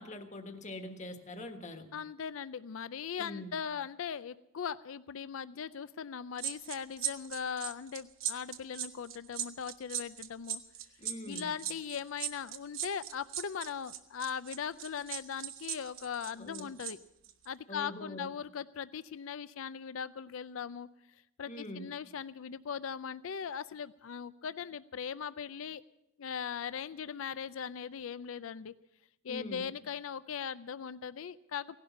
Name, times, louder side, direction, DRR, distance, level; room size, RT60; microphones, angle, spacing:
voice 1, 0.0-1.9 3.2-3.5 11.0-11.5 16.4-16.7 17.7-18.3 21.5-21.9 29.3-29.7, left 1 dB, 35° left, 6 dB, 1.5 m, -43 dB
voice 2, 1.9-10.6 11.3-17.0 17.5-20.9 21.4-25.8 26.2-28.7 29.2-31.8, left 7 dB, 75° left, 15 dB, 0.5 m, -39 dB
sound 1, 6.4-16.9 17.2-17.5, right 9 dB, 75° right, 1.1 m, -38 dB
17.0 x 11.5 x 6.9 m, 0.86 s
head